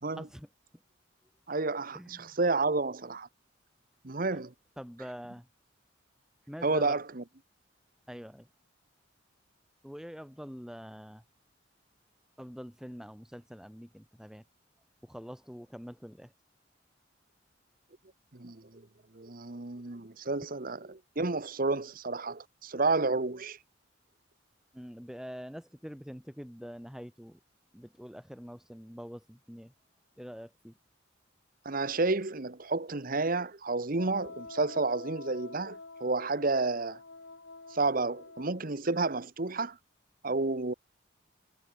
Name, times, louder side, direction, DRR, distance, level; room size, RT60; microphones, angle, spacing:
voice 1, 0.2-0.5 1.9-2.3 4.3-4.4 4.8-5.5 6.5-7.0 8.1-8.5 9.8-11.2 12.4-14.4 15.0-16.3 24.7-27.4 27.7-29.7 30.2-30.7, equal, 5° right, 7.1 m, -45 dB
voice 2, 1.5-3.3 4.0-4.5 6.6-7.2 18.3-18.9 19.1-23.6 31.6-37.0 37.7-39.8 40.2-40.7, right 3 dB, 45° right, 1.2 m, -31 dB
Wind instrument woodwind instrument, 33.9-38.7, left 3 dB, 75° left, 6.8 m, -47 dB
head